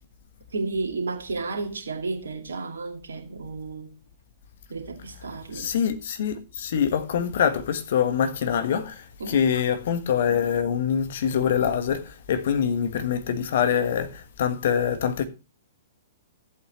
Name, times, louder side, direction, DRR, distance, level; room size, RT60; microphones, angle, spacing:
voice 1, 0.5-4.0 4.7-5.7 9.2-9.6, right 3 dB, 70° right, 2.2 m, -32 dB
voice 2, 5.5-15.2, left 8 dB, 55° left, 1.4 m, -25 dB
14.0 x 8.4 x 3.1 m
figure-of-eight pair, 110°, 0 cm